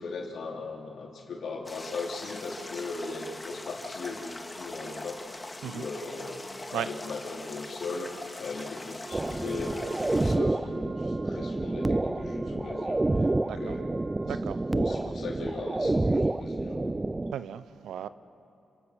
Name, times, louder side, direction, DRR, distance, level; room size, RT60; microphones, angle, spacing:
voice 1, 0.0-14.0 14.3-14.4 14.7-16.9, left 3 dB, 70° left, 3.8 m, -38 dB
sound 1, 1.6-10.4, left 2 dB, 20° left, 2.3 m, -42 dB
Wind instrument woodwind instrument, 9.0-14.8, right 3 dB, 45° right, 4.5 m, -48 dB
sound 2, 9.1-17.3, right 2 dB, 20° right, 0.5 m, -28 dB
voice 2, 13.5-13.8 14.2-14.7 15.0-15.1 15.8-15.9 17.3-18.1, right 9 dB, 85° right, 0.7 m, -36 dB
28.0 x 27.5 x 6.3 m
cardioid pair, 60°, 0 cm